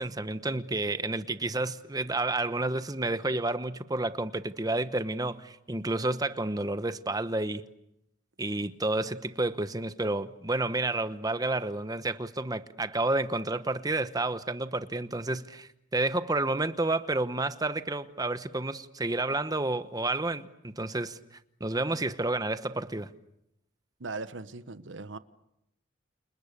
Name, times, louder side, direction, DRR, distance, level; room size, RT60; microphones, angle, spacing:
voice 1, 0.0-7.7 8.4-23.1, right 2 dB, 20° right, 1.0 m, -30 dB
voice 2, 24.0-25.2, right 3 dB, 75° right, 1.1 m, -39 dB
29.5 x 29.0 x 6.8 m
head